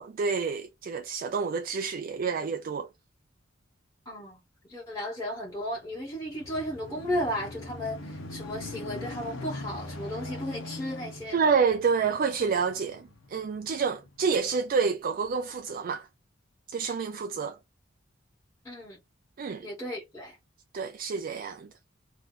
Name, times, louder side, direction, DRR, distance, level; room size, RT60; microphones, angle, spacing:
voice 1, 0.0-2.9 11.3-16.1 16.7-17.6 19.4-19.7 20.7-21.7, right 5 dB, 45° right, 0.4 m, -28 dB
voice 2, 4.0-4.4 4.7-11.4 18.6-19.0 19.6-20.3, equal, 15° left, 1.6 m, -34 dB
sound 1, 5.8-14.6 15.2-15.4, left 2 dB, 80° left, 1.1 m, -42 dB
3.2 x 2.7 x 4.0 m
head